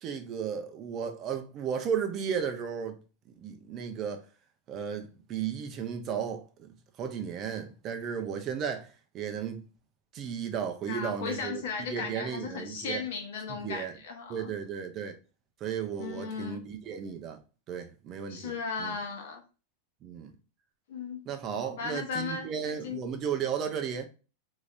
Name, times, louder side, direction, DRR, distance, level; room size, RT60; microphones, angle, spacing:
voice 1, 0.0-3.0 3.4-4.2 4.7-6.7 7.0-8.9 9.1-9.6 10.1-11.6 11.9-13.0 13.5-13.9 14.3-15.2 15.6-17.4 17.7-18.5 18.8-19.0 20.0-20.3 21.3-24.0, right 7 dB, 25° right, 0.4 m, -34 dB
voice 2, 10.8-14.5 16.0-16.7 18.3-19.4 20.9-21.2 21.6-22.5 22.8-23.0, left 5 dB, 60° left, 0.9 m, -36 dB
3.3 x 2.6 x 2.5 m
supercardioid pair, 180°, 0 cm